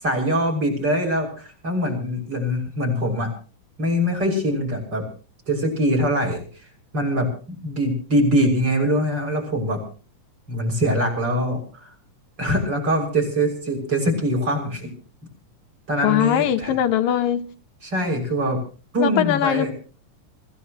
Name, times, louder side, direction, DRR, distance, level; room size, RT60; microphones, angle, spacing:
voice 1, 0.0-3.3 3.8-5.0 5.5-6.7 6.9-7.3 7.6-9.8 10.5-11.9 12.4-14.9 15.9-16.7 17.8-18.6 18.9-19.7, equal, 30° right, 7.0 m, -23 dB
voice 2, 16.0-17.4 19.0-19.7, left 11 dB, 85° left, 2.8 m, -21 dB
26.5 x 16.0 x 3.1 m
omnidirectional pair, 3.9 m